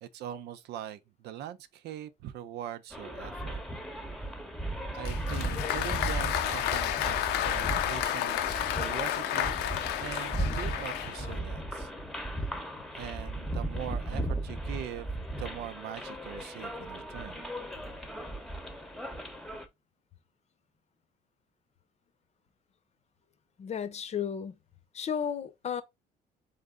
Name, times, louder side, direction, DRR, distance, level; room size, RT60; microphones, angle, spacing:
voice 1, 0.0-3.6 4.9-11.9 12.4-12.5 12.9-15.1 15.4-17.5, right 10 dB, 75° right, 0.6 m, -42 dB
sound 1, 2.9-19.7, right 1 dB, ahead, 0.9 m, -36 dB
Applause, 5.0-11.4, left 12 dB, 85° left, 0.6 m, -31 dB
voice 2, 23.6-24.6 24.9-25.8, left 8 dB, 40° left, 0.7 m, -33 dB
4.0 x 3.3 x 3.6 m
cardioid pair, 110°, 17 cm